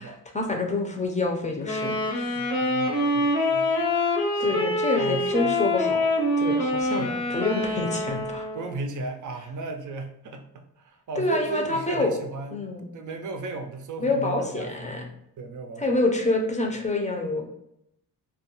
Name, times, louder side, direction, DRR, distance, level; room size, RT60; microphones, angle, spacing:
voice 1, 0.0-2.5 4.4-6.1 6.4-8.4 11.2-12.2 12.5-12.9 14.0-15.0 15.8-17.5, left 2 dB, 20° left, 2 dB, 0.5 m, -27 dB
Wind instrument woodwind instrument, 1.6-8.8, left 1 dB, 70° left, 0.8 m, -25 dB
voice 2, 2.2-3.7 4.3-4.6 5.0-5.5 6.9-7.3 8.5-12.6 12.9-15.0 15.4-15.8, right 3 dB, 50° right, 5 dB, 0.5 m, -36 dB
2.3 x 2.2 x 2.9 m, 0.77 s
cardioid pair, 75°, 38 cm